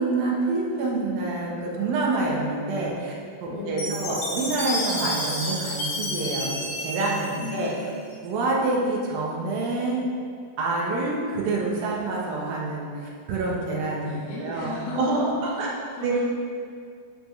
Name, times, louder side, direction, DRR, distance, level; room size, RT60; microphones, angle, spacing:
voice 1, 0.0-3.1 3.4-7.7 8.2-10.0 10.6-15.7 16.0-16.1, right 2 dB, 70° right, -3 dB, 3.0 m, -27 dB
voice 2, 3.5-4.1 7.4-7.8 12.0-12.1 14.0-15.2 15.5-16.2, left 3 dB, 90° left, -6 dB, 3.5 m, -36 dB
Chime, 3.8-8.1, left 1 dB, 65° left, 3.9 m, -30 dB
11.5 x 5.9 x 3.3 m, 2.3 s
omnidirectional pair, 4.4 m